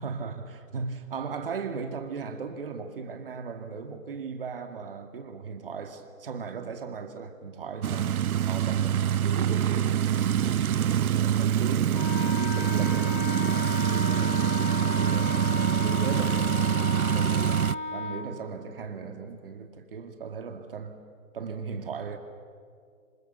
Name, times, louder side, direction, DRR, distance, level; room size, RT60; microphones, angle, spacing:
voice 1, 0.0-8.2 8.5-17.6 17.9-21.0 21.3-22.2, right 5 dB, 40° right, 2.3 m, -37 dB
sound 1, 7.8-17.7, right 10 dB, 85° right, 0.6 m, -25 dB
Wind instrument woodwind instrument, 11.9-18.3, left 5 dB, 35° left, 1.2 m, -34 dB
26.5 x 26.0 x 6.8 m
hypercardioid pair, 170°, 42 cm